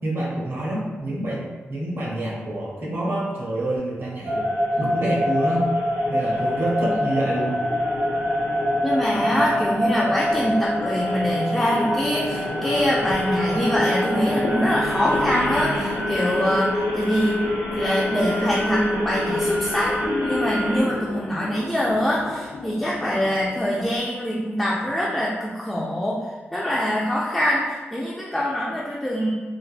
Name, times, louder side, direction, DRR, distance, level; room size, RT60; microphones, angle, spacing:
voice 1, 0.0-4.4 4.8-5.7 6.1-7.6, right 1 dB, 60° right, -4 dB, 0.7 m, -27 dB
sound 1, 4.2-20.8, left 1 dB, 80° right, 1.2 m, -25 dB
sound 2, 6.0-24.0, left 3 dB, 80° left, 0.4 m, -36 dB
voice 2, 8.8-17.4 17.6-20.0 20.2-26.2 26.5-27.6 27.9-29.3, equal, 5° left, -6 dB, 0.3 m, -24 dB
3.3 x 2.1 x 2.4 m, 1.3 s
wide cardioid pair, 150°, 5 cm